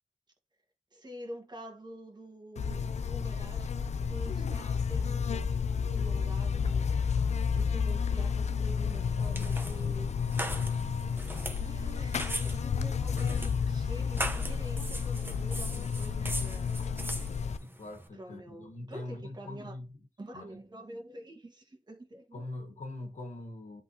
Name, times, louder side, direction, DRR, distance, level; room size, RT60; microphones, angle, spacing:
voice 1, 0.9-5.5 5.9-6.9 7.5-10.1 11.6-16.7 18.1-19.7 20.2-22.5, right 1 dB, 35° right, 1.5 m, -47 dB
Buzz, 2.6-17.6, left 6 dB, 70° left, 0.4 m, -31 dB
sound 1, 8.9-18.1, right 1 dB, 15° right, 0.8 m, -40 dB
voice 2, 17.6-19.9 20.3-20.4 22.3-23.8, left 2 dB, 85° left, 1.3 m, -42 dB
11.0 x 3.7 x 2.8 m
wide cardioid pair, 85°, 12 cm